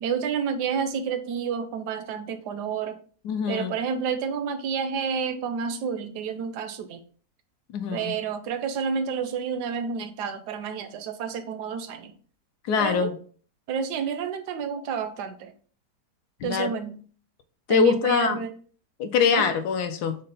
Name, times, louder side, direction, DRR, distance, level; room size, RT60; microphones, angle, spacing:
voice 1, 0.0-3.0 3.5-7.0 7.9-12.1 12.8-13.1 13.7-15.5 16.4-17.0 17.7-18.5 19.3-19.5, right 6 dB, 80° right, 10 dB, 1.2 m, -29 dB
voice 2, 3.2-3.8 7.7-8.2 12.7-13.1 16.4-16.7 17.7-18.4 19.0-20.2, left 6 dB, 75° left, 7 dB, 1.1 m, -23 dB
5.3 x 2.1 x 4.0 m, 0.43 s
omnidirectional pair, 1.8 m